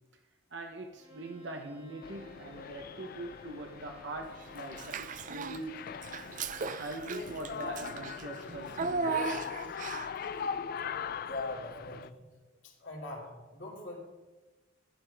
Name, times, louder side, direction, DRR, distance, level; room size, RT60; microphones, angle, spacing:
voice 1, 0.5-5.8 6.8-9.4, right 2 dB, 60° right, 4 dB, 0.9 m, -42 dB
Bowed string instrument, 0.9-6.8, right 1 dB, 25° right, 2.8 m, -57 dB
sound 1, 2.0-12.1, left 7 dB, 50° left, 0.3 m, -41 dB
Child speech kid speaking / Bathtub (filling or washing), 4.7-5.6 6.0-10.3, right 5 dB, 40° right, 0.5 m, -36 dB
voice 2, 11.3-12.3 12.6-14.0, left 2 dB, 75° left, -2 dB, 2.5 m, -42 dB
11.5 x 11.0 x 3.4 m, 1.2 s
head